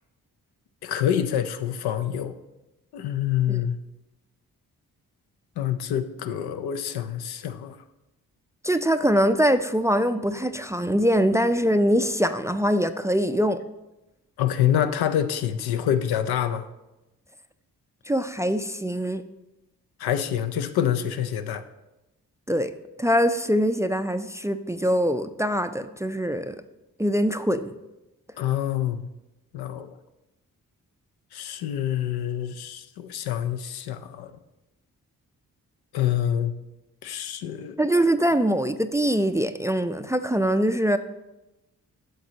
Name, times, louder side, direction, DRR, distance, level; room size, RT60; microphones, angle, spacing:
voice 1, 0.8-2.3 2.9-3.8 5.6-7.8 14.4-16.6 20.0-21.6 28.4-29.1 29.5-29.9 31.3-34.3 35.9-36.5 37.0-37.8, left 10 dB, 80° left, 9 dB, 0.6 m, -26 dB
voice 2, 8.6-13.6 18.1-19.2 22.5-22.7 23.0-26.6 27.0-27.7 37.8-41.0, equal, 10° right, 10 dB, 0.3 m, -23 dB
9.2 x 6.4 x 2.8 m, 0.98 s
supercardioid pair, 45°, 37 cm